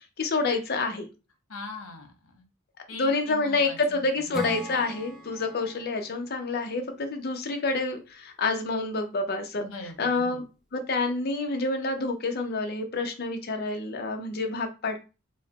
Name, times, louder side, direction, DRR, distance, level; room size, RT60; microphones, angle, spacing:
voice 1, 0.2-1.1 2.9-9.6 10.0-10.4 10.7-15.0, left 3 dB, 50° left, 5 dB, 0.6 m, -28 dB
voice 2, 1.5-2.4 2.9-4.5 9.6-10.4, left 3 dB, 80° left, 4 dB, 0.9 m, -42 dB
Acoustic guitar / Strum, 4.3-7.8, right 1 dB, ahead, 0.5 m, -41 dB
3.1 x 2.1 x 3.9 m, 0.31 s
head